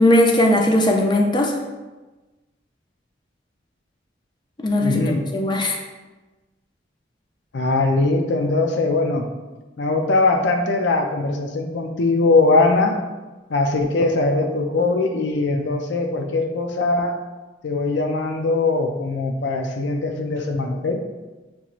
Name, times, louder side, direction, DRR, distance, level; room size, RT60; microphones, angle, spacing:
voice 1, 0.0-1.6 4.6-5.0 5.3-5.8, left 1 dB, 25° left, 0 dB, 0.5 m, -18 dB
voice 2, 4.8-5.3 7.5-9.3 9.8-13.0 13.5-17.2 17.6-21.0, left 3 dB, 75° left, 4 dB, 0.5 m, -21 dB
6.9 x 3.0 x 2.5 m, 1.2 s
head